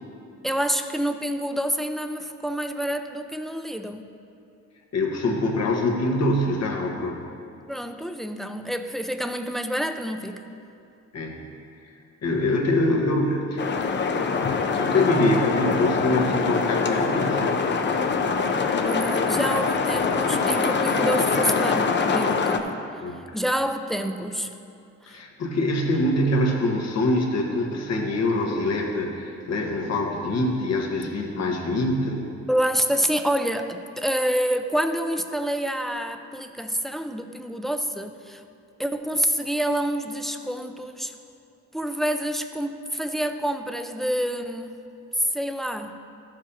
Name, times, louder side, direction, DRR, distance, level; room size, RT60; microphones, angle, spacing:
voice 1, 0.4-4.1 7.7-10.4 18.5-22.8 23.3-24.5 25.1-25.2 32.5-38.4 38.8-41.1 41.7-44.8 45.2-46.0, equal, ahead, 7 dB, 0.5 m, -27 dB
voice 2, 4.9-7.2 11.1-11.4 12.2-14.2 14.8-17.6 23.0-23.2 25.1-32.2, left 1 dB, 60° left, 0 dB, 1.5 m, -24 dB
sound 1, 13.6-22.6, left 5 dB, 35° left, 0.7 m, -24 dB
14.0 x 7.5 x 2.9 m, 2.6 s
cardioid pair, 90°, 30 cm